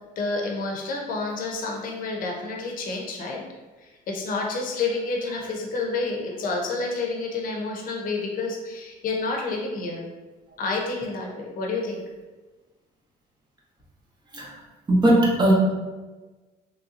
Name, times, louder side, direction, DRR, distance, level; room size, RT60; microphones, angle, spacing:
voice 1, 0.2-3.4 3.8-10.1 10.6-12.0, left 3 dB, 55° left, 0 dB, 0.7 m, -29 dB
voice 2, 14.9-15.5, right 1 dB, 25° right, -4 dB, 0.9 m, -19 dB
3.2 x 2.7 x 2.5 m, 1.3 s
cardioid pair, 110°, 17 cm